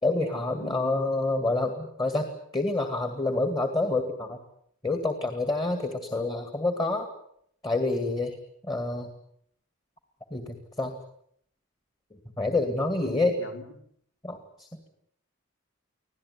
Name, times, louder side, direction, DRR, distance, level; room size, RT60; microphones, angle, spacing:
voice 1, 0.0-2.3 2.5-4.4 4.8-7.1 7.6-8.4 8.7-9.1 10.3-11.0 12.4-13.3 14.2-14.7, left 2 dB, 20° left, 7 dB, 2.3 m, -27 dB
voice 2, 0.6-0.9 13.0-13.7, left 1 dB, 70° left, 5 dB, 4.0 m, -41 dB
26.0 x 17.0 x 9.7 m, 0.69 s
head